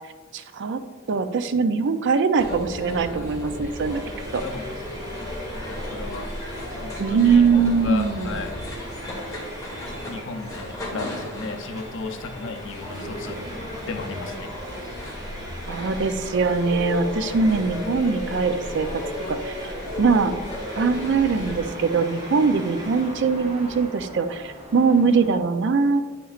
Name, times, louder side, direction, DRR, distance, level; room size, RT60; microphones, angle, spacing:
voice 1, 0.3-0.8 1.1-4.0 4.3-4.4 7.0-8.3 15.7-18.9 19.3-19.7 20.0-20.3 20.8-26.0, right 5 dB, 60° right, 10 dB, 0.4 m, -22 dB
sound 1, 2.4-21.6, left 1 dB, 15° left, 1.4 m, -34 dB
Frying (food), 3.6-23.3, equal, 20° right, 0.8 m, -44 dB
voice 2, 4.4-5.2 5.5-6.3 6.8-8.6 10.1-13.4 13.9-14.5, left 3 dB, 65° left, 5 dB, 0.6 m, -35 dB
sound 2, 6.7-25.4, equal, 35° right, 1.3 m, -45 dB
8.4 x 5.8 x 2.4 m, 1.4 s
head